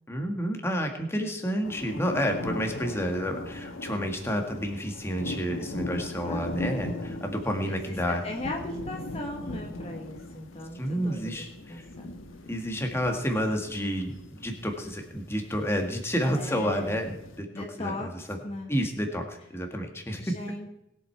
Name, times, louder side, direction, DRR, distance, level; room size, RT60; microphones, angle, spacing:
voice 1, 0.1-8.2 10.7-11.9 12.5-18.2 18.7-20.3, equal, 15° left, 3 dB, 1.8 m, -30 dB
sound 1, 1.6-17.4, left 2 dB, 85° left, 1.2 m, -39 dB
voice 2, 6.2-6.6 7.7-12.1 16.3-17.0 17.5-18.7 20.2-20.7, left 2 dB, 30° left, 1 dB, 1.3 m, -39 dB
21.0 x 7.8 x 4.6 m, 0.87 s
head